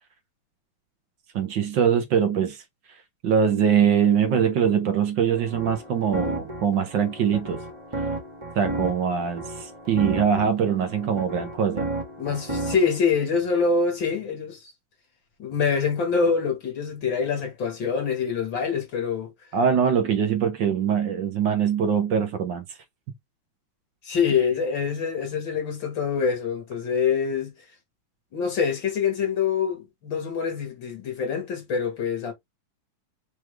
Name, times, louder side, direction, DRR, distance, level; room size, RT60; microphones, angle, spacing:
voice 1, 1.3-2.6 2.9-7.6 8.5-11.9 19.5-22.8, right 7 dB, 65° right, 1.4 m, -23 dB
sound 1, 5.3-13.0, right 2 dB, 20° right, 1.0 m, -33 dB
voice 2, 12.2-14.6 15.4-19.3 24.1-27.5 28.3-32.3, left 5 dB, 60° left, 2.4 m, -25 dB
4.8 x 3.1 x 3.3 m
omnidirectional pair, 2.4 m